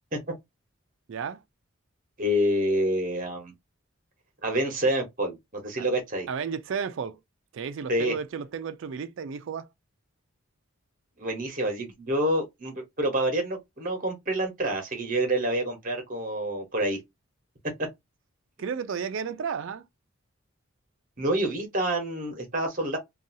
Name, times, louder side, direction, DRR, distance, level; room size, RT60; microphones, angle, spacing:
voice 1, 1.1-1.4 5.8-5.9 6.3-7.2 7.5-9.7 18.6-19.8, right 6 dB, 60° right, 0.3 m, -33 dB
voice 2, 2.2-3.5 4.4-6.3 7.9-8.2 11.2-17.0 21.2-23.0, right 1 dB, 40° right, 1.0 m, -27 dB
2.6 x 2.3 x 2.6 m
head